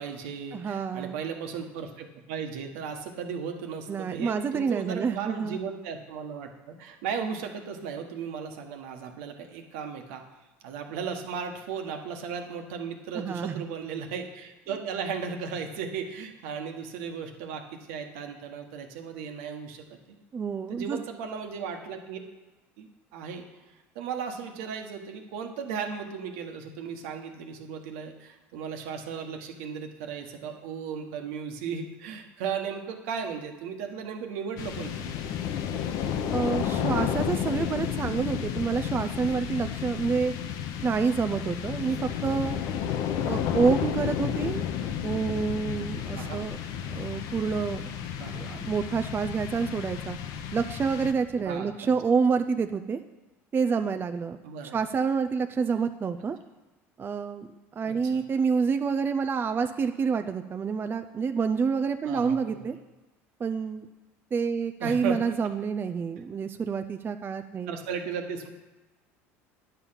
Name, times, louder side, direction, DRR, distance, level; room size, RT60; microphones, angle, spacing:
voice 1, 0.0-10.2 10.6-20.2 20.7-22.2 22.8-23.4 23.9-35.1 46.1-46.4 48.2-48.7 51.4-51.9 54.4-54.7 57.8-58.2 62.0-62.7 64.8-65.2 67.7-68.6, right 6 dB, 75° right, 4 dB, 1.3 m, -36 dB
voice 2, 0.5-1.2 3.9-5.6 13.1-13.5 20.3-21.0 36.3-40.3 40.8-42.6 43.2-44.6 45.0-46.6 46.9-47.8 48.3-50.2 50.5-53.0 53.5-54.4 54.7-56.4 57.0-57.5 57.8-62.8 63.4-63.9 64.3-67.8, right 5 dB, 30° right, 7 dB, 0.5 m, -28 dB
sound 1, 34.6-51.5, left 8 dB, 65° left, 0.9 m, -32 dB
9.8 x 6.9 x 5.7 m, 1.1 s
hypercardioid pair, 85°, 7 cm